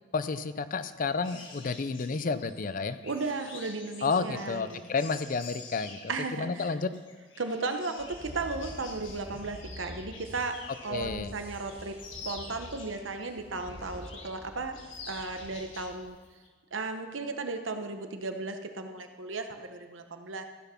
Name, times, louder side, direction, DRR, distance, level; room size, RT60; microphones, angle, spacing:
voice 1, 0.1-3.0 4.0-6.1 6.4-6.9 10.9-11.3, left 4 dB, 45° left, 13 dB, 0.5 m, -31 dB
sound 1, 1.2-11.0 11.4-13.3 13.7-14.4 14.7-16.0 16.2-16.5, left 4 dB, 85° left, 1.7 m, -48 dB
voice 2, 3.0-4.8 6.1-6.7 7.4-10.6 10.8-11.9 12.2-14.8 15.1-16.2 16.7-20.5, right 3 dB, 90° right, 6 dB, 1.0 m, -35 dB
sound 2, 8.0-16.1, equal, 30° right, 1.5 m, -47 dB
15.0 x 6.1 x 5.8 m, 1.5 s
head